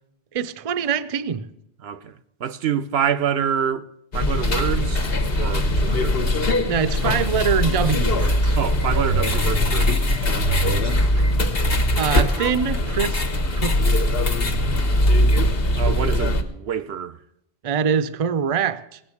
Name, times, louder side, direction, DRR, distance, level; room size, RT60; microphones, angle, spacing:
voice 1, 0.3-1.5 6.7-8.6 11.2-11.3 11.9-13.2 13.5-14.0 17.6-19.0, right 7 dB, 40° right, 0.6 m, -24 dB
voice 2, 1.8-3.9 4.1-5.1 5.4-6.2 8.6-9.9 10.2-11.1 15.8-17.2, right 8 dB, 80° right, 0.9 m, -27 dB
sound 1, 4.1-16.4, left 1 dB, 70° left, 1.4 m, -21 dB
17.0 x 7.4 x 8.4 m
omnidirectional pair, 1.0 m